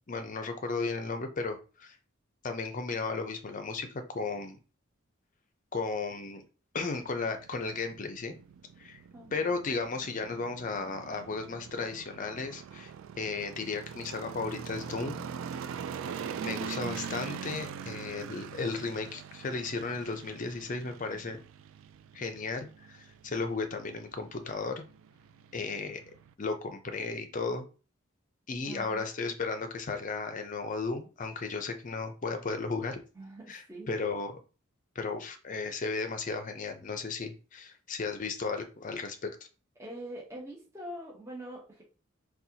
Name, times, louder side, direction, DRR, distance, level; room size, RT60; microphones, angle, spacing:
voice 1, 0.1-2.0 2.4-4.6 5.7-6.4 6.7-8.3 8.8-9.0 9.3-15.3 16.4-21.4 22.1-24.8 25.5-26.0 26.4-27.7 28.5-33.0 33.5-33.6 33.9-34.4 35.0-39.3, left 4 dB, 40° left, 7 dB, 0.5 m, -35 dB
sound 1, 7.0-26.3, right 7 dB, 80° right, 0.3 m, -43 dB
voice 2, 9.1-9.5 21.1-21.2 28.6-29.0 33.1-33.9 39.8-41.8, right 1 dB, 15° right, -4 dB, 0.8 m, -44 dB
4.1 x 2.3 x 2.7 m, 0.35 s
head